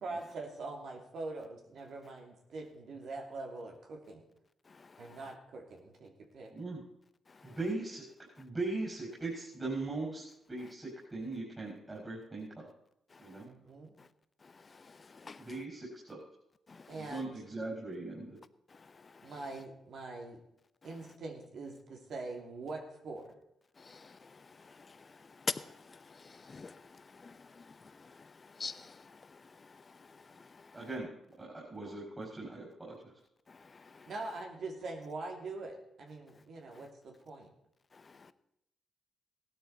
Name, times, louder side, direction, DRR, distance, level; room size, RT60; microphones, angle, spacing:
voice 1, 0.0-4.2 5.0-6.5 13.4-13.9 16.9-17.3 19.2-20.4 20.8-23.2 34.1-37.5, right 3 dB, 70° right, 2.8 m, -43 dB
voice 2, 4.6-5.3 7.3-7.6 10.6-10.7 13.1-13.5 14.0-14.1 14.4-15.6 16.7-17.2 18.7-19.5 20.8-21.0 23.8-30.9 33.5-34.1 36.3-36.4 36.7-36.9 37.9-38.3, left 4 dB, 40° left, 0.8 m, -47 dB
voice 3, 6.5-6.8 7.4-8.0 8.4-12.7 13.2-13.5 15.4-16.2 16.9-18.4 30.7-31.1 31.4-33.1, right 2 dB, 25° right, 5.4 m, -39 dB
16.5 x 12.0 x 4.2 m
cardioid pair, 65°, 0 cm